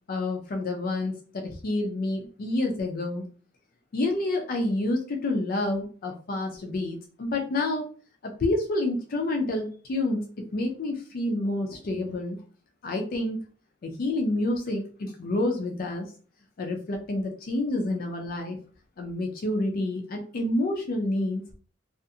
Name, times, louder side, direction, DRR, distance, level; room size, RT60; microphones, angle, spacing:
voice 1, 0.1-3.3 3.9-7.9 8.4-10.2 10.5-12.4 12.8-13.4 13.8-16.1 16.6-18.6 19.0-21.4, left 2 dB, 45° left, 2 dB, 0.4 m, -28 dB
2.4 x 2.4 x 2.6 m, 0.41 s
head